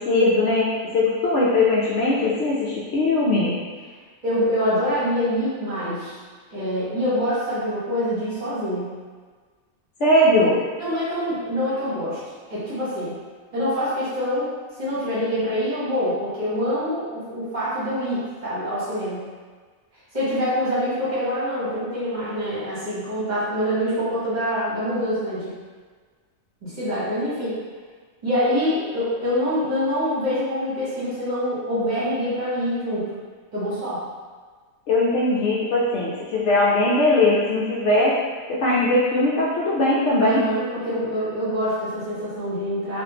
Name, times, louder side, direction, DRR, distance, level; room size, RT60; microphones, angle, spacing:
voice 1, 0.0-3.6 10.0-10.6 34.9-38.2 38.5-40.4, left 2 dB, 65° left, -5 dB, 0.8 m, -20 dB
voice 2, 4.2-6.2 6.5-8.9 10.8-12.2 12.5-13.1 13.5-14.5 14.8-19.2 20.1-25.5 26.6-27.6 28.2-33.1 33.5-34.0 40.2-43.0, equal, 35° right, -10 dB, 1.0 m, -25 dB
3.4 x 2.4 x 2.8 m, 1.5 s
omnidirectional pair, 1.4 m